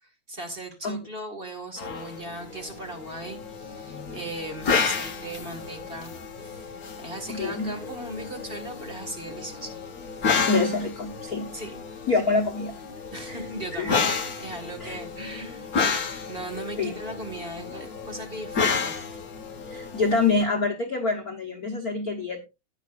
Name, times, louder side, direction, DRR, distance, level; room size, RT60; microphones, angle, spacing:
voice 1, 0.0-6.7 7.0-9.8 11.5-11.8 13.1-14.1 14.4-15.7 16.0-19.0, right 1 dB, 30° right, 3 dB, 1.1 m, -38 dB
sound 1, 1.8-20.4, left 5 dB, 50° left, 1.0 m, -31 dB
voice 2, 3.9-4.2 7.3-7.7 10.5-11.5 12.1-12.7 13.3-13.4 13.8-14.0 14.8-15.0 16.8-16.9 19.7-22.4, left 3 dB, 85° left, 2 dB, 0.8 m, -26 dB
14.0 x 9.7 x 2.5 m, 0.25 s
omnidirectional pair, 3.6 m